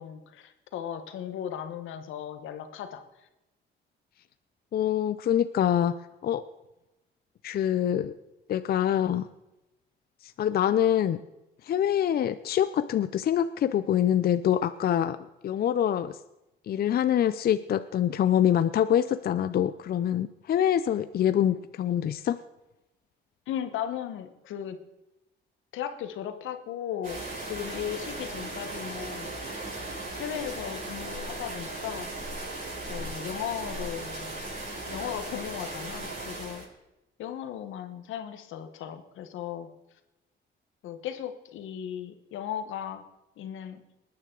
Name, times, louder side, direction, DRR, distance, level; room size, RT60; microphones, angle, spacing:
voice 1, 0.0-3.0 23.5-24.8 25.7-29.3 30.2-32.1 32.9-34.4 34.9-36.7 37.2-39.7 40.8-43.0 43.4-43.8, left 10 dB, 85° left, 9 dB, 1.1 m, -36 dB
voice 2, 4.7-6.0 6.2-6.5 7.4-8.1 8.5-9.3 10.2-11.2 11.6-15.2 15.4-16.2 16.7-22.4, left 10 dB, 50° left, 12 dB, 0.5 m, -25 dB
sound 1, 27.0-36.7, right 2 dB, 45° right, 6.0 m, -37 dB
20.0 x 9.6 x 3.8 m, 0.95 s
cardioid pair, 90°, 20 cm